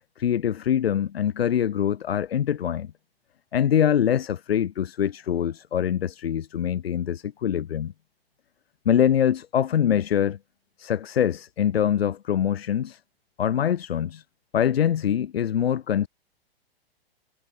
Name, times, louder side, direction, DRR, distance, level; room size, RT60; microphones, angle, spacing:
voice 1, 0.2-2.9 3.5-7.9 8.9-10.4 10.8-13.0 13.4-14.2 14.5-16.1, left 9 dB, 80° left, 0.6 m, -24 dB
figure-of-eight pair, 110°, 30 cm